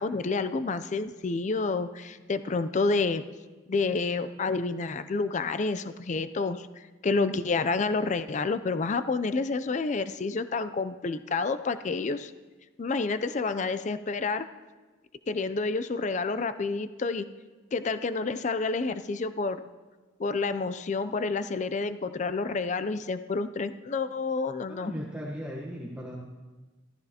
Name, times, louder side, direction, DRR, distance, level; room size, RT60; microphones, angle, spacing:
voice 1, 0.0-3.2 3.7-12.3 12.8-14.5 15.3-17.3 17.7-19.6 20.2-24.9, left 3 dB, 35° left, 12 dB, 0.4 m, -29 dB
voice 2, 24.7-26.2, equal, 5° right, -4 dB, 1.0 m, -37 dB
15.0 x 14.0 x 2.9 m, 1.3 s
head